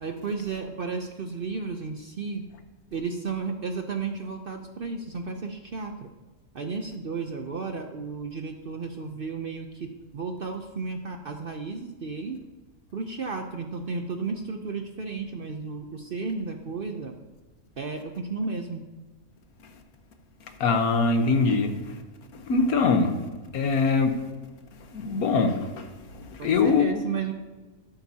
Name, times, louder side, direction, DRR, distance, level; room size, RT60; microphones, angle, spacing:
voice 1, 0.0-2.4 2.9-6.1 6.5-12.4 12.9-17.2 17.8-18.9 26.4-27.3, right 4 dB, 50° right, 5 dB, 0.7 m, -33 dB
voice 2, 20.6-22.0 22.3-23.2 23.5-24.2 24.8-27.0, left 4 dB, 90° left, 6 dB, 1.5 m, -23 dB
13.0 x 11.5 x 2.8 m, 1.2 s
omnidirectional pair, 1.5 m